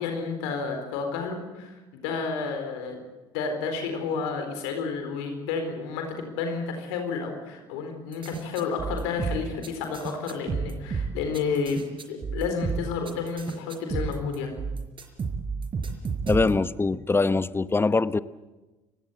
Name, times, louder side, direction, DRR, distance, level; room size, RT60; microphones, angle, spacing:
voice 1, 0.0-3.1 3.3-14.6, left 5 dB, 80° left, 5 dB, 4.2 m, -31 dB
sound 1, 8.1-16.7, right 5 dB, 40° right, 4.3 m, -31 dB
voice 2, 16.3-18.2, left 3 dB, 15° left, 15 dB, 0.9 m, -23 dB
29.5 x 16.5 x 8.1 m, 1.1 s
hypercardioid pair, 65°, 13 cm